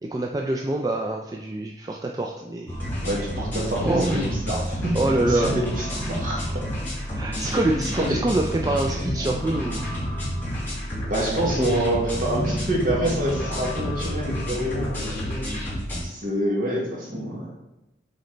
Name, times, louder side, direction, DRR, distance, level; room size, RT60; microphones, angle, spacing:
voice 1, 0.0-2.8 3.8-4.4 4.9-5.5 6.3-6.4 7.1-9.9, right 2 dB, 20° right, 1 dB, 0.3 m, -25 dB
sound 1, 2.7-16.0, equal, 10° left, 2.1 m, -29 dB
voice 2, 3.0-4.9 5.3-6.6 7.4-7.6 8.0-8.2 8.9-9.0 11.1-15.2 16.0-17.5, right 1 dB, 50° right, -3 dB, 1.5 m, -27 dB
7.7 x 4.1 x 3.3 m, 0.96 s
head